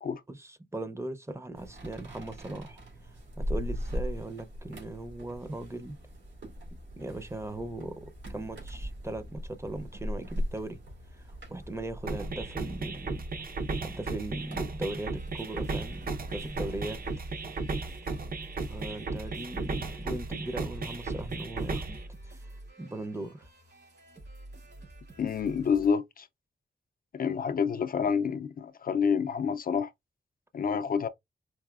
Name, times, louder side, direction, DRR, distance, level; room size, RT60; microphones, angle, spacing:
voice 1, 0.3-2.8 3.4-6.0 7.0-10.8 11.1-11.2 11.5-13.2 13.8-17.0 18.7-22.5 22.8-23.5, right 2 dB, 15° right, 0.6 m, -39 dB
sound 1, 1.5-17.1, equal, 85° right, 2.5 m, -40 dB
sound 2, 12.1-22.1, right 3 dB, 50° right, 0.7 m, -35 dB
sound 3, 15.1-25.9, right 1 dB, 70° right, 2.9 m, -49 dB
voice 2, 25.2-26.3 27.1-29.9 30.5-31.1, left 6 dB, 50° left, 0.4 m, -28 dB
4.8 x 2.6 x 2.3 m
wide cardioid pair, 100°, 19 cm